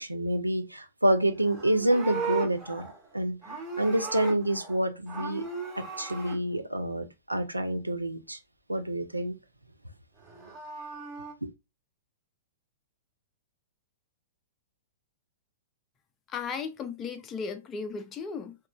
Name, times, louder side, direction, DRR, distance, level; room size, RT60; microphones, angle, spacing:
voice 1, 0.0-2.8 3.1-3.4 3.8-5.4 5.8-8.4 8.7-9.4 11.4-11.5, right 1 dB, 85° right, 0.4 m, -27 dB
Livestock farm animals working animals, 1.4-4.8 5.1-6.4 10.1-11.3, right 5 dB, 15° right, 0.8 m, -37 dB
voice 2, 16.3-18.6, left 5 dB, 20° left, 0.4 m, -35 dB
2.9 x 2.3 x 2.2 m
figure-of-eight pair, 105°, 0 cm